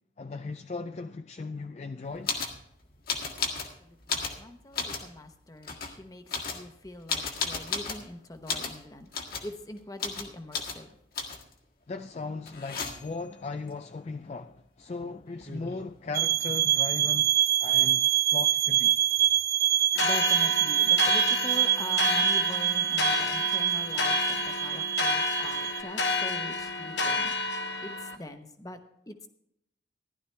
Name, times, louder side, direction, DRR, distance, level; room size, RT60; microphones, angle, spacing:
voice 1, 0.2-2.3 11.9-17.3 17.6-19.0, left 3 dB, 35° left, 0.3 m, -37 dB
sound 1, 2.3-2.6 3.1-3.7 4.0-5.1 5.6-5.9 6.3-8.1 8.5-8.8 9.1-9.5 10.0-10.3 10.5-10.8 11.2-11.5 12.5-13.2 15.0-15.1 15.3-15.9, left 4 dB, 55° left, 1.7 m, -33 dB
voice 2, 3.5-6.2 6.5-9.1 9.4-10.9 19.7-27.3 27.8-28.8 29.1-29.3, left 1 dB, 20° left, 0.9 m, -42 dB
sound 2, 16.1-25.8, right 12 dB, 55° right, 0.4 m, -25 dB
sound 3, 19.9-28.1, left 3 dB, 70° left, 1.1 m, -30 dB
15.5 x 11.5 x 3.3 m
head